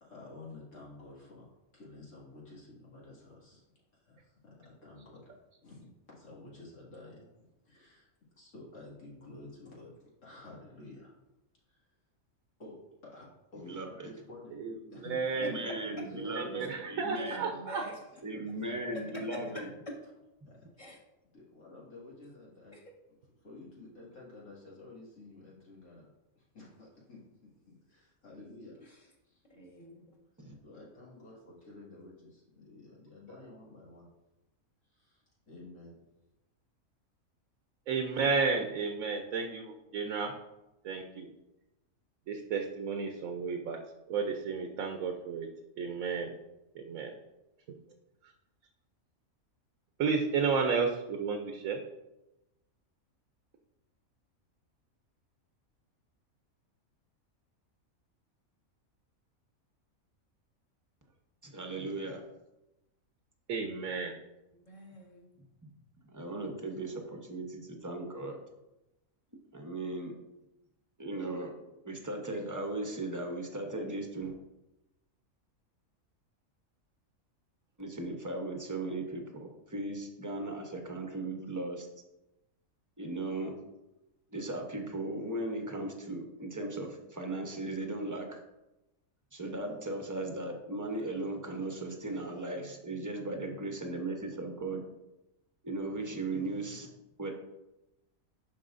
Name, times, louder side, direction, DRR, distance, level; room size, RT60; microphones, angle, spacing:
voice 1, 0.0-3.6 3.9-8.1 8.4-11.2 11.7-11.9 12.6-13.3 13.5-14.6 14.9-15.6 16.0-16.9 17.5-19.2 20.5-20.6 21.2-22.8 23.4-26.1 26.4-28.9 29.2-29.4 30.6-34.1 34.8-36.0, left 2 dB, 85° left, -6 dB, 2.6 m, -51 dB
voice 2, 13.6-14.1 15.3-17.4 18.2-19.7 20.4-20.5 30.4-30.6 61.4-62.2 66.1-68.4 69.5-70.1 71.0-71.5 71.8-74.3 77.8-81.9 83.0-83.5 84.3-88.4 89.3-94.8 95.6-96.9 97.2-97.3, right 2 dB, 15° right, 2 dB, 0.7 m, -37 dB
voice 3, 14.6-17.9 37.9-40.4 40.8-41.3 42.3-43.8 44.1-45.5 45.8-46.4 46.7-47.1 47.7-47.8 48.2-48.3 50.0-51.8 63.5-64.2, right 5 dB, 75° right, 4 dB, 1.1 m, -32 dB
voice 4, 17.1-18.0 19.1-19.4 20.8-21.0 22.7-22.8 29.5-30.1 64.5-65.3, left 1 dB, 35° left, -4 dB, 1.6 m, -46 dB
11.5 x 4.4 x 2.5 m, 0.97 s
omnidirectional pair, 1.4 m